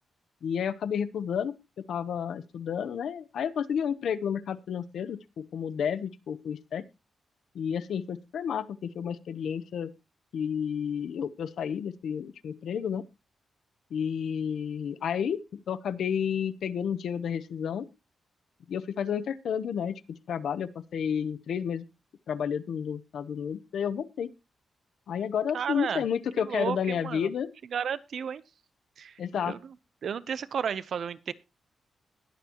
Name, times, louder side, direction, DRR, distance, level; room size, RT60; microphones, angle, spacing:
voice 1, 0.4-6.9 7.5-9.9 10.3-13.1 13.9-17.9 18.7-21.8 22.3-24.3 25.1-27.5 29.2-29.5, left 8 dB, 75° left, 15 dB, 0.8 m, -31 dB
voice 2, 25.5-26.0 26.5-27.3 27.7-28.4 29.0-29.1 29.5-29.6 30.0-31.3, right 7 dB, 55° right, 17 dB, 0.6 m, -32 dB
20.5 x 7.1 x 2.9 m, 0.25 s
wide cardioid pair, 175°, 0 cm